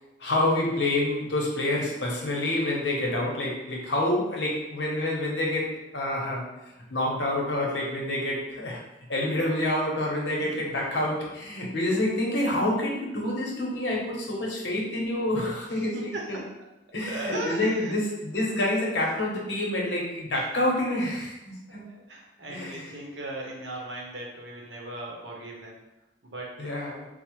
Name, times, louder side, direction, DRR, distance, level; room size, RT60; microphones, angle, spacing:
voice 1, 0.2-6.5 6.9-8.8 9.1-16.4 16.9-21.8 22.5-22.9 26.6-27.1, left 1 dB, 75° left, -2 dB, 0.9 m, -28 dB
voice 2, 15.8-16.4 17.0-18.0 21.7-25.8 26.2-26.7, right 1 dB, 80° right, -1 dB, 0.9 m, -37 dB
4.6 x 2.1 x 3.0 m, 0.95 s
head